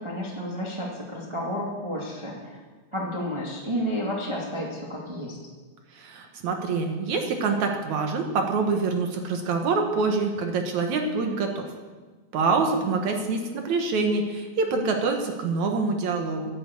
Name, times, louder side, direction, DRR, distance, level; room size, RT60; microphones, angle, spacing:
voice 1, 0.0-2.6 2.9-5.4 12.5-12.7, equal, 15° right, -3 dB, 0.9 m, -31 dB
voice 2, 5.9-11.7 12.3-16.5, right 4 dB, 60° right, 4 dB, 2.1 m, -26 dB
11.0 x 10.5 x 8.3 m, 1.3 s
omnidirectional pair, 4.5 m